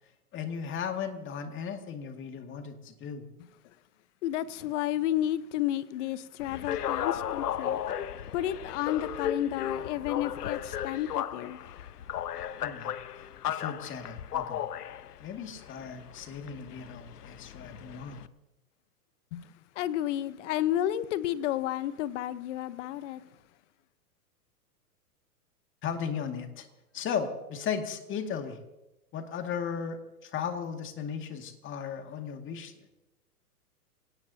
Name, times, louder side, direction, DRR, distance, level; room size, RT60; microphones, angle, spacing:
voice 1, 0.3-3.2 12.6-12.9 13.5-14.6 15.2-18.2 25.8-26.7 26.9-28.6 29.1-32.9, left 7 dB, 25° left, 2.1 m, -36 dB
voice 2, 4.2-7.8 8.3-11.6 19.3-19.5 19.8-23.2, left 12 dB, 50° left, 1.0 m, -31 dB
sound 1, 6.4-18.3, left 10 dB, 85° left, 0.9 m, -35 dB
27.0 x 17.5 x 2.8 m
hypercardioid pair, 125°, 46 cm